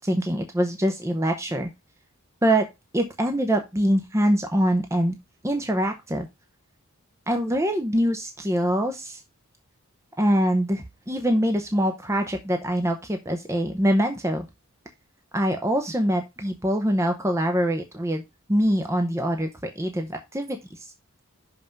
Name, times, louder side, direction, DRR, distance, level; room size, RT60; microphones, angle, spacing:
voice 1, 0.0-1.7 2.4-2.7 2.9-5.2 5.4-6.3 7.3-9.2 10.2-14.5 15.3-18.2 18.5-20.9, equal, 15° right, 5 dB, 0.8 m, -24 dB
6.0 x 5.6 x 5.2 m, 0.22 s
head